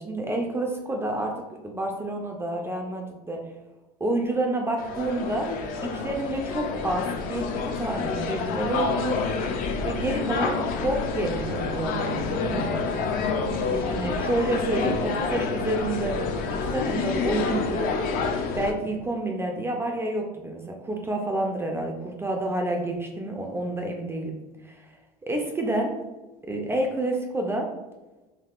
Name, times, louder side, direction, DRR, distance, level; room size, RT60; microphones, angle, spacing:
voice 1, 0.0-3.4 4.0-9.2 9.8-12.7 13.7-16.2 16.5-17.9 18.5-24.4 24.6-24.9 25.2-25.9 26.5-27.7, right 1 dB, 15° right, 1 dB, 0.4 m, -29 dB
sound 1, 4.8-18.7, left 4 dB, 50° left, 0.4 m, -28 dB
3.5 x 2.3 x 2.4 m, 1.1 s
supercardioid pair, 100°, 19 cm